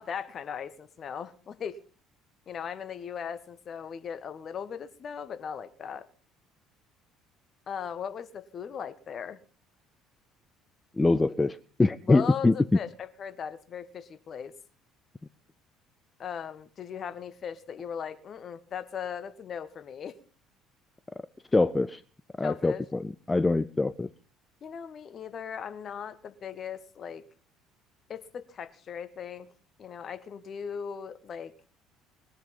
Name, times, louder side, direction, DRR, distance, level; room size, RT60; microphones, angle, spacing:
voice 1, 0.0-1.8 2.5-6.1 7.7-9.4 12.0-14.5 16.2-20.2 22.4-22.8 24.6-27.2 28.1-29.5 29.8-31.5, left 7 dB, 45° left, 13 dB, 1.6 m, -38 dB
voice 2, 11.0-12.5 21.5-22.0 22.4-24.1, left 3 dB, 15° left, 15 dB, 0.6 m, -24 dB
21.0 x 10.0 x 5.5 m, 0.40 s
figure-of-eight pair, 55°, 0 cm